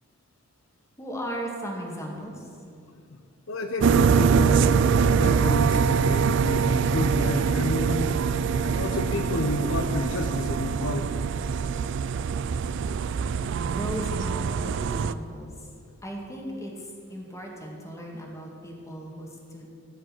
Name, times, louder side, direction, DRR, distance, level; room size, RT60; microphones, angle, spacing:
voice 1, 1.0-2.5 13.7-15.7 16.0-19.7, equal, 15° left, -1 dB, 2.0 m, -36 dB
voice 2, 3.5-4.7 5.0-8.1 8.6-11.2, left 2 dB, 70° left, 7 dB, 0.8 m, -30 dB
sound 1, 3.8-15.1, right 6 dB, 60° right, 0.4 m, -24 dB
15.5 x 5.4 x 8.5 m, 2.5 s
head